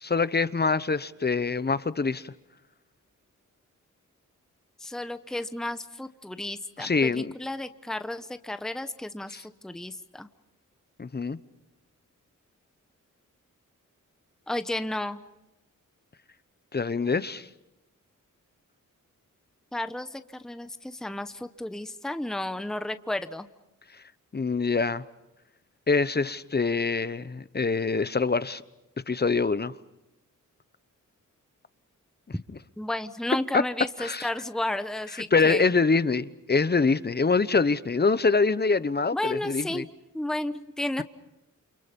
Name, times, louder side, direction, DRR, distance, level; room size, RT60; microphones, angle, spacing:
voice 1, 0.0-2.3 6.8-7.3 9.3-9.4 11.0-11.4 16.7-17.5 24.3-25.0 25.9-28.6 29.1-29.7 32.5-32.6 33.5-33.6 34.0-34.3 35.1-39.9, left 4 dB, 30° left, 0.9 m, -25 dB
voice 2, 4.8-10.3 14.5-15.2 19.7-23.5 32.8-35.7 39.1-39.9 40.1-41.0, left 1 dB, ahead, 1.0 m, -33 dB
29.0 x 29.0 x 5.4 m
wide cardioid pair, 90°, 32 cm